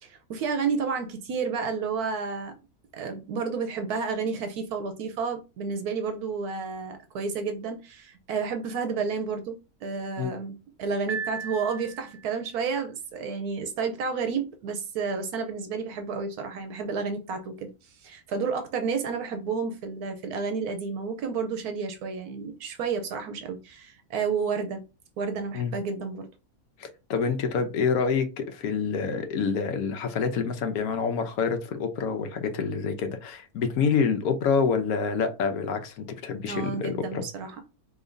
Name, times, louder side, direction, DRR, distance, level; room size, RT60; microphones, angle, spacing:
voice 1, 0.0-2.5 2.9-24.8 25.2-26.3 36.4-37.6, right 5 dB, 80° right, 1.1 m, -31 dB
Piano, 11.1-12.4, right 5 dB, 55° right, 0.8 m, -36 dB
voice 2, 26.8-37.2, left 5 dB, 75° left, 1.2 m, -27 dB
5.1 x 2.8 x 2.5 m
omnidirectional pair, 1.6 m